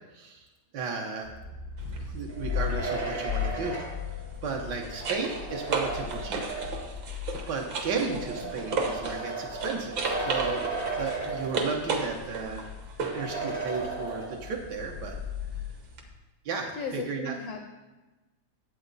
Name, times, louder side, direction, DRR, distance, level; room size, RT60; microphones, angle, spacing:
voice 1, 0.7-1.3 2.1-3.8 4.4-6.4 7.5-10.7 11.0-12.6 13.1-15.2 16.4-17.3, right 4 dB, 80° right, 0 dB, 0.9 m, -34 dB
sound 1, 1.2-16.1, left 8 dB, 55° left, 0.8 m, -39 dB
sound 2, 1.8-2.0 4.3-9.3 9.6-13.3 16.0-16.1, right 4 dB, 60° right, 1.3 m, -34 dB
sound 3, 2.3-7.0 7.9-12.1 12.4-12.5 13.1-14.7, right 3 dB, 40° right, 0.7 m, -35 dB
voice 2, 8.4-8.7 16.7-17.7, left 4 dB, 80° left, 2 dB, 1.3 m, -37 dB
10.0 x 8.1 x 4.0 m, 1.1 s
omnidirectional pair, 3.4 m